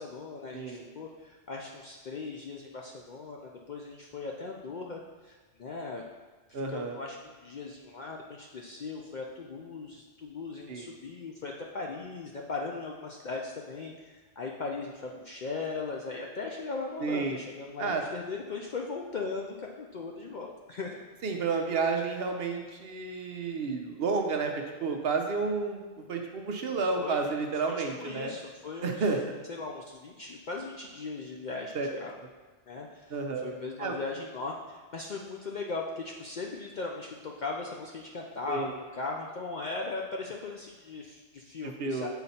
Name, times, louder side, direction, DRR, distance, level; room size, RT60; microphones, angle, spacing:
voice 1, 0.0-6.0 6.5-21.0 26.9-27.3 28.0-29.1 29.5-32.1 32.7-42.1, left 3 dB, 55° left, 0 dB, 0.5 m, -38 dB
voice 2, 0.5-0.8 6.5-7.0 10.7-10.9 17.0-17.4 17.8-18.0 21.2-25.8 26.1-28.4 28.8-29.2 31.7-31.9 33.1-33.5 33.8-33.9 38.5-38.7 41.8-42.1, right 4 dB, 60° right, 3 dB, 0.8 m, -31 dB
7.0 x 4.0 x 4.2 m, 1.3 s
omnidirectional pair, 1.2 m